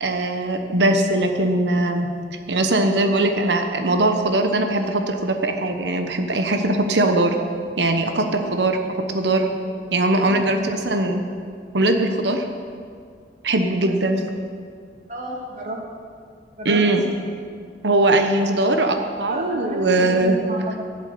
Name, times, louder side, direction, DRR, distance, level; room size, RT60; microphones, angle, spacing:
voice 1, 0.0-2.1 2.5-7.3 7.8-8.8 9.1-9.5 9.9-11.2 11.7-12.4 13.4-14.2 16.6-17.0 17.8-20.4, right 2 dB, 80° right, 6 dB, 1.1 m, -20 dB
voice 2, 10.3-10.7 15.1-15.8 16.6-16.8 19.3-20.9, equal, 45° right, -1 dB, 2.3 m, -32 dB
12.5 x 8.1 x 8.5 m, 2.2 s
head